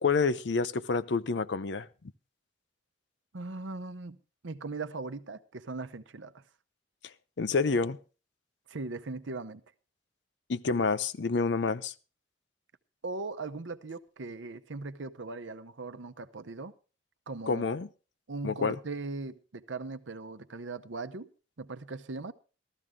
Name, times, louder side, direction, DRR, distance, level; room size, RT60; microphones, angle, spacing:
voice 1, 0.0-1.9 7.4-8.0 10.5-11.9 17.5-17.9 18.4-18.8, left 4 dB, 65° left, 0.6 m, -28 dB
voice 2, 3.3-4.2 4.4-6.4 8.7-9.6 13.0-16.7 17.3-17.8 18.3-21.3 21.6-22.3, right 3 dB, 80° right, 0.8 m, -39 dB
14.0 x 13.5 x 3.6 m
head